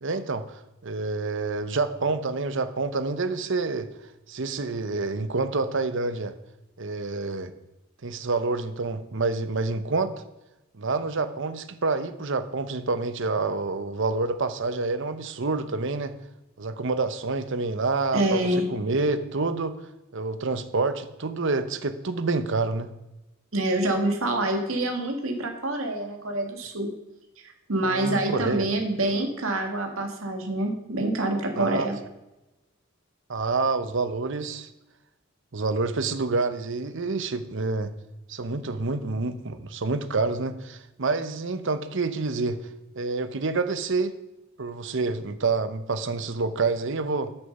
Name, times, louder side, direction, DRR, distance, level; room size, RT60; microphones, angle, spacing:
voice 1, 0.0-3.9 4.3-6.3 6.8-7.5 8.0-10.1 10.7-16.1 16.6-19.8 20.1-22.9 27.8-28.7 31.5-31.9 33.3-34.7 35.5-37.9 38.3-42.6 42.9-44.1 44.6-47.3, right 3 dB, 65° right, 11 dB, 0.9 m, -28 dB
voice 2, 18.1-18.7 23.5-26.9 27.4-32.0, right 1 dB, 85° right, 3 dB, 2.1 m, -26 dB
13.0 x 6.7 x 5.4 m, 0.97 s
head